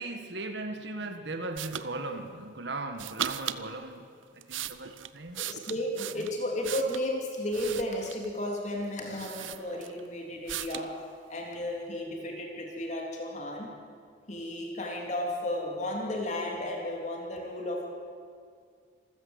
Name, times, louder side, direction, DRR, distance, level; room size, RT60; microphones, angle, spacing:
voice 1, 0.0-5.4 6.1-6.3, right 2 dB, 65° right, 6 dB, 1.5 m, -38 dB
sound 1, 1.6-1.9 3.0-3.6 4.2-7.1 7.5-8.3 8.8-8.9 9.2-10.1 10.5-10.9, right 10 dB, 90° right, 0.8 m, -37 dB
voice 2, 5.4-10.9 11.3-13.7 14.3-17.9, left 1 dB, 40° left, 0 dB, 3.1 m, -33 dB
26.5 x 15.0 x 8.1 m, 2.2 s
head